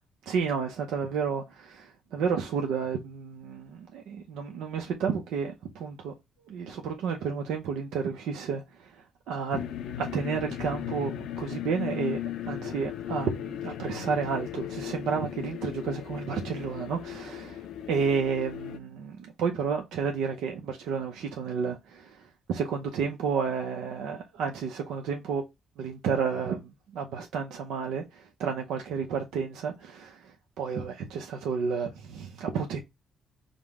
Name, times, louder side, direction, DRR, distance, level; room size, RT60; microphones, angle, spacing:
voice 1, 0.3-6.1 6.5-9.6 10.0-11.1 11.4-12.2 12.4-25.4 25.8-32.8, right 6 dB, 85° right, 0.6 m, -31 dB
sound 1, 9.5-18.8, left 11 dB, 80° left, 0.5 m, -37 dB
5.1 x 2.1 x 3.5 m
cardioid pair, 90°, 0 cm